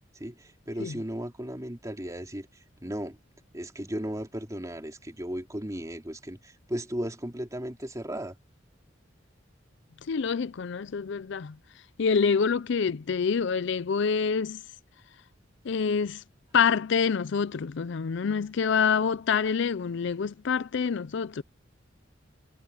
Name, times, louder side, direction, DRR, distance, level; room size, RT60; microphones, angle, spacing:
voice 1, 0.2-2.5 2.8-3.2 3.5-8.4, equal, 15° right, 2.8 m, -35 dB
voice 2, 10.1-11.6 12.0-14.6 15.6-16.2 16.5-21.4, left 6 dB, 65° left, 0.5 m, -26 dB
head